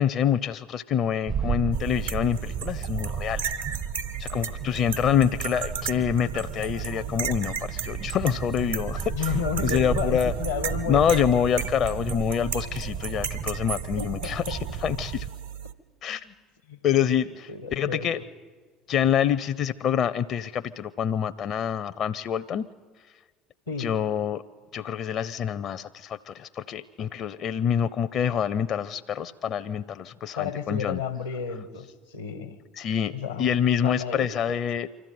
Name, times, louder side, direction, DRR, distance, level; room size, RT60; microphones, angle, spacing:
voice 1, 0.0-3.4 4.2-9.3 9.6-10.3 10.9-15.3 16.0-16.2 16.8-18.2 18.9-22.6 23.8-24.4 24.7-31.0 32.8-33.1 33.4-34.9, left 9 dB, 50° left, 0.6 m, -26 dB
sound 1, 1.3-15.3, right 7 dB, 45° right, 0.6 m, -34 dB
sound 2, 1.7-15.7, right 7 dB, 85° right, 0.9 m, -35 dB
voice 2, 9.1-11.2 14.0-14.6 16.1-16.3 16.7-16.8 17.2-18.2 23.7-23.9 30.4-32.6 33.1-33.5 33.8-34.3, left 6 dB, 85° left, 1.3 m, -32 dB
24.5 x 14.0 x 9.4 m
figure-of-eight pair, 65°, 0 cm